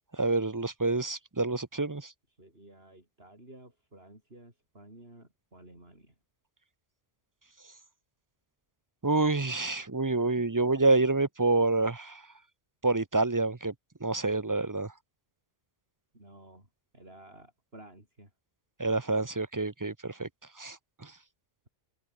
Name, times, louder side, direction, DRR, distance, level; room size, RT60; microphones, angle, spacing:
voice 1, 0.1-2.1 9.0-12.2 12.8-13.7 14.0-14.9 18.8-20.3 20.6-20.8 21.0-21.1, right 3 dB, 20° right, 0.7 m, -27 dB
voice 2, 2.3-6.2 16.1-18.3, right 1 dB, 55° right, 7.3 m, -53 dB
open air
omnidirectional pair, 1.2 m